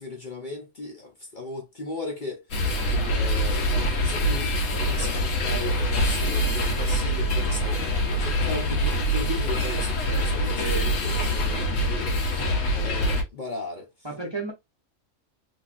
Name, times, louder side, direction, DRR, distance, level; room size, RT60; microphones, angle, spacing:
voice 1, 0.0-2.4 2.9-7.8 8.2-12.5 12.7-13.9, left 3 dB, 45° left, 0.9 m, -37 dB
sound 1, 2.5-13.2, equal, 80° left, 1.3 m, -25 dB
voice 2, 10.6-10.9 14.0-14.5, right 2 dB, 25° right, 0.9 m, -32 dB
3.3 x 3.3 x 2.5 m
omnidirectional pair, 1.3 m